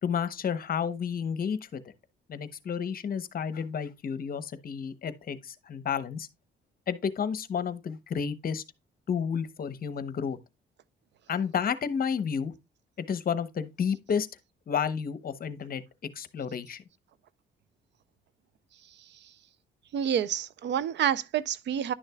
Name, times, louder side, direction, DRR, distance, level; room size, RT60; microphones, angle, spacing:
voice 1, 0.0-1.9 2.3-6.3 6.9-8.6 9.1-10.4 11.3-12.5 13.0-14.3 14.7-16.8, left 7 dB, 50° left, 0.9 m, -31 dB
voice 2, 19.9-21.9, right 9 dB, 65° right, 0.5 m, -28 dB
11.0 x 6.4 x 2.3 m
cardioid pair, 90°, 20 cm